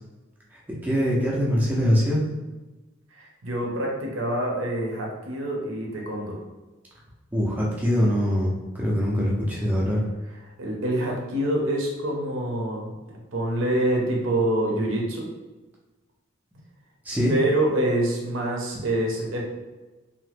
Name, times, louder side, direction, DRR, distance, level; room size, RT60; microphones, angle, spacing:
voice 1, 0.5-2.2 7.3-10.0 17.0-17.3, equal, 10° right, -5 dB, 0.4 m, -23 dB
voice 2, 3.1-6.4 10.6-12.9 13.3-15.3 17.3-19.4, right 1 dB, 75° right, -1 dB, 0.7 m, -26 dB
2.8 x 2.1 x 3.2 m, 1.2 s
head